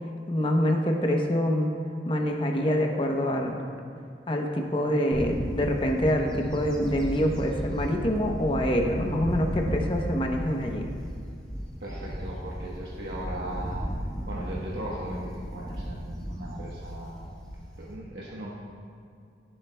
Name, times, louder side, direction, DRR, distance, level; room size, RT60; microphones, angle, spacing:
voice 1, 0.3-1.7 2.1-3.6 4.3-10.8, equal, 30° left, 2 dB, 0.8 m, -26 dB
Bird / Wind, 5.1-17.9, equal, 5° left, 1.2 m, -35 dB
voice 2, 11.8-13.8 14.3-17.3 17.8-18.5, right 1 dB, 75° right, -5 dB, 1.1 m, -38 dB
14.5 x 7.8 x 2.2 m, 2.5 s
head